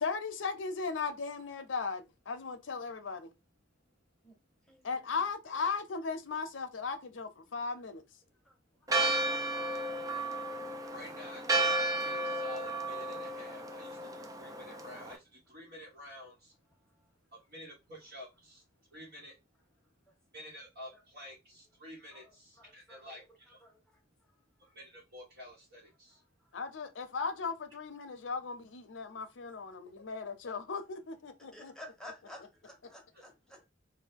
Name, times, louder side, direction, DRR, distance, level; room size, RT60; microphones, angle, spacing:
voice 1, 0.0-3.3 4.8-8.0 26.5-31.7, left 4 dB, 80° left, 0.6 m, -37 dB
voice 2, 4.7-5.2 8.4-8.6 16.9-17.1 22.1-23.8 31.5-33.7, left 1 dB, 5° left, 0.9 m, -53 dB
Church bell, 8.9-15.2, right 2 dB, 20° right, 0.4 m, -33 dB
voice 3, 10.9-16.6 17.3-19.4 20.3-23.6 24.6-26.2 33.1-33.2, left 1 dB, 60° right, 1.1 m, -50 dB
2.7 x 2.3 x 3.5 m
head